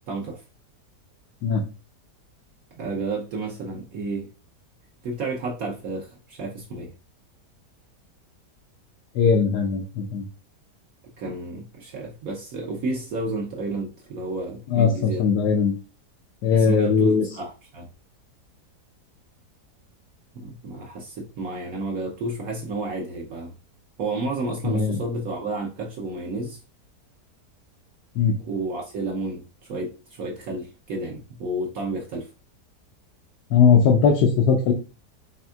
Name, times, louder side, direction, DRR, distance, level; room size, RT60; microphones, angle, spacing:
voice 1, 0.1-0.4 2.8-4.3 5.0-6.9 11.2-15.3 16.5-17.9 20.3-23.5 24.0-26.6 28.4-32.3, right 2 dB, 65° right, 1.0 m, -31 dB
voice 2, 9.1-10.2 14.7-15.7 16.4-17.2 24.6-25.0 28.1-28.3 33.5-34.7, left 6 dB, 80° left, 1.2 m, -19 dB
4.4 x 3.4 x 2.3 m
omnidirectional pair, 1.8 m